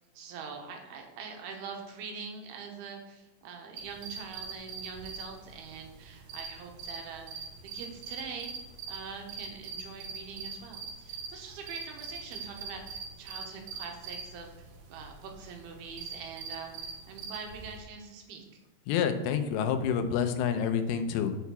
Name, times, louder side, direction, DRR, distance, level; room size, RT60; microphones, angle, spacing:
voice 1, 0.1-7.5 7.7-8.5 8.9-14.5 14.9-18.5, right 5 dB, 90° right, 2 dB, 3.0 m, -43 dB
sound 1, 3.8-17.8, right 5 dB, 75° right, 3.1 m, -43 dB
voice 2, 18.9-21.4, left 7 dB, 90° left, 8 dB, 2.7 m, -28 dB
7.0 x 4.6 x 6.9 m, 0.99 s
omnidirectional pair, 4.4 m